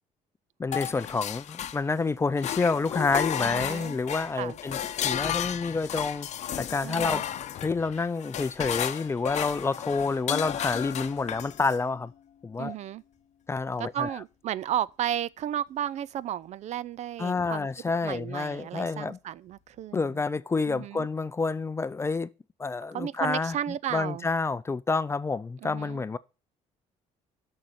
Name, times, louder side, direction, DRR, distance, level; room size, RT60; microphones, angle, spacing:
voice 1, 0.6-4.8 5.0-6.3 6.6-7.2 7.6-12.1 12.4-12.8 13.5-14.1 17.2-19.2 19.9-22.3 22.6-23.5 23.9-26.2, left 4 dB, 20° left, 0.4 m, -28 dB
sound 1, 0.7-2.0 2.4-11.8, left 10 dB, 55° left, 0.7 m, -33 dB
voice 2, 3.4-3.9 4.4-4.6 6.8-7.2 12.6-13.0 13.8-17.7 18.0-20.2 20.7-21.1 22.9-24.3 25.6-26.0, right 11 dB, 55° right, 0.4 m, -33 dB
6.7 x 6.4 x 7.6 m
cardioid pair, 115°, 14 cm